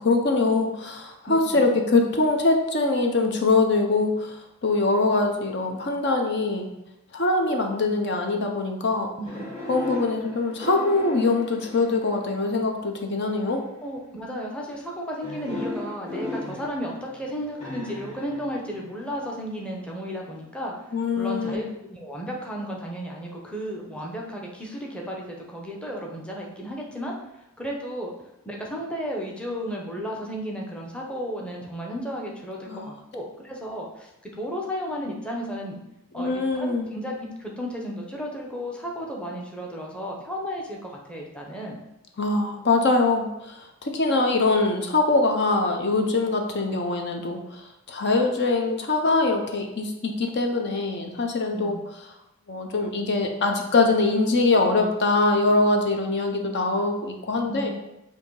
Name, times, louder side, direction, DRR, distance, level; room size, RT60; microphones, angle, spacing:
voice 1, 0.0-6.7 7.1-9.1 9.7-13.6 20.9-21.7 32.7-32.9 36.2-36.9 42.2-47.6 47.9-51.8 52.5-57.7, left 3 dB, 50° left, 3 dB, 0.7 m, -23 dB
voice 2, 1.3-1.8 9.2-9.4 13.8-20.7 21.2-21.6 21.9-27.2 27.6-28.1 28.4-34.1 34.4-35.8 36.1-41.8 51.5-51.8 57.5-57.7, equal, 5° left, -2 dB, 0.8 m, -33 dB
sound 1, 9.2-12.6 13.3-13.8 15.2-19.3 21.4-21.5, left 2 dB, 30° left, 1.9 m, -37 dB
7.7 x 2.8 x 4.7 m, 0.89 s
head